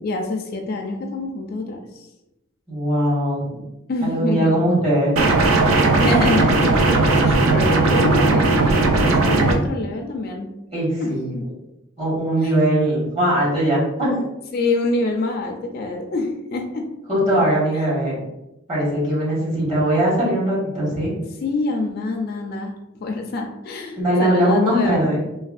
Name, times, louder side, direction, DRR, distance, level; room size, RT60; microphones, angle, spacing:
voice 1, 0.0-2.1 3.9-4.6 5.9-6.8 7.2-10.5 11.0-11.5 12.4-12.6 14.5-16.9 21.4-25.0, left 3 dB, 50° left, 3 dB, 0.3 m, -26 dB
voice 2, 2.7-3.5 4.0-5.1 10.7-11.3 12.0-14.2 17.1-18.2 18.7-21.1 23.9-25.2, right 1 dB, 30° right, -8 dB, 1.4 m, -20 dB
sound 1, 5.2-9.5, right 3 dB, 80° right, 0.4 m, -17 dB
3.3 x 2.2 x 2.4 m, 0.92 s
head